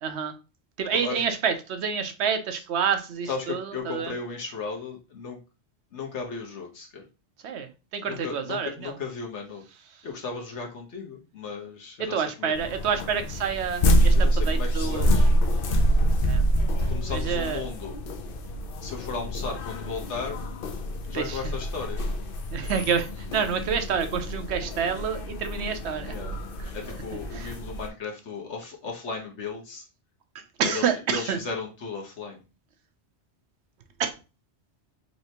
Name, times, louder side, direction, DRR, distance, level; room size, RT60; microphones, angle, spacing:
voice 1, 0.0-0.4 0.8-4.2 7.4-9.0 12.0-15.1 16.3-16.4 16.8-17.6 21.1-21.5 22.5-26.2 26.6-26.7 27.3-27.5 30.3-31.4 34.0-34.1, right 7 dB, 75° right, 8 dB, 0.9 m, -28 dB
voice 2, 3.2-5.4 5.9-7.0 8.0-9.6 10.0-12.5 14.1-15.3 16.9-18.0 18.8-20.5 21.1-22.0 26.0-26.3 26.7-29.8 30.6-32.4, left 4 dB, 90° left, 1 dB, 1.4 m, -35 dB
sound 1, 12.5-27.9, equal, 60° left, 0.7 m, -26 dB
4.2 x 3.3 x 2.9 m, 0.30 s
omnidirectional pair, 1.1 m